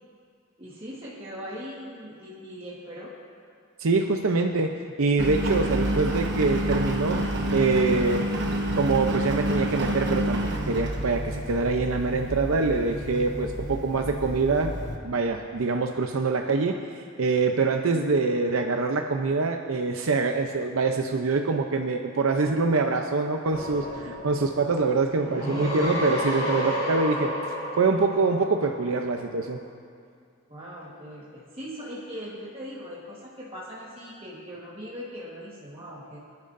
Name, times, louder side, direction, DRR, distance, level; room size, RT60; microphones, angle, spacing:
voice 1, 0.6-3.1 30.5-36.2, equal, 25° right, -6 dB, 1.4 m, -40 dB
voice 2, 3.8-7.2 7.5-8.3 8.7-14.7 15.0-27.3 27.8-29.6, right 3 dB, 80° right, 4 dB, 0.6 m, -25 dB
Engine, 5.2-15.0, right 1 dB, 55° right, 1.2 m, -28 dB
sound 1, 23.5-29.1, left 1 dB, 30° left, 3.3 m, -31 dB
25.5 x 10.5 x 2.6 m, 2.3 s
head